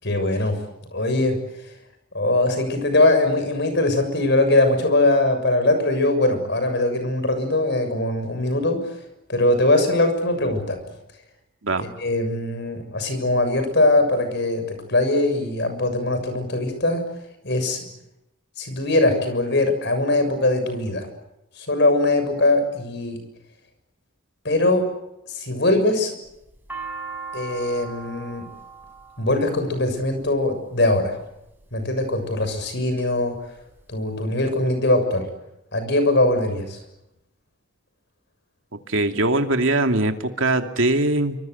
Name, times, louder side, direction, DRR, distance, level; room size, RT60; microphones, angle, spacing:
voice 1, 0.0-0.6 0.9-1.4 2.1-8.9 9.3-10.8 12.0-17.0 17.4-17.8 18.6-21.1 21.6-23.2 24.4-24.9 25.3-26.1 27.3-28.5 29.2-31.2 31.7-33.4 33.9-35.3 35.7-36.8, left 2 dB, 55° left, 8 dB, 6.9 m, -21 dB
sound 1, 26.3-30.5 31.3-31.8 32.4-33.0 33.4-33.5 33.6-34.5, right 4 dB, 10° right, 7.0 m, -38 dB
voice 2, 38.9-41.4, right 2 dB, 70° right, 5 dB, 2.7 m, -21 dB
27.0 x 25.5 x 8.0 m, 0.88 s
head